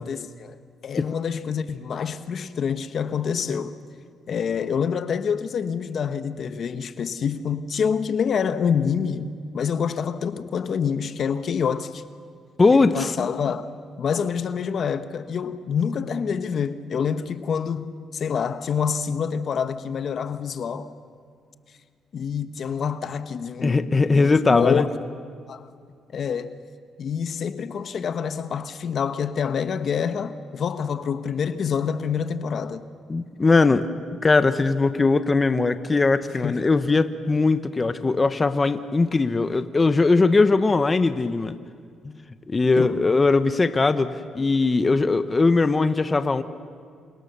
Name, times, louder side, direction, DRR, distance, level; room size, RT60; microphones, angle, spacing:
voice 1, 0.0-3.8 4.3-12.0 12.7-13.7 14.0-20.9 22.1-24.8 25.5-25.7 26.1-26.6 27.0-32.9 36.4-36.6 42.7-43.0, left 7 dB, 55° left, 1.1 m, -27 dB
voice 2, 12.6-13.2 23.6-24.8 33.1-33.9 34.2-41.5 42.5-44.1 44.3-46.4, left 3 dB, 25° left, 1.1 m, -20 dB
28.0 x 28.0 x 6.9 m
cardioid pair, 90°, 0 cm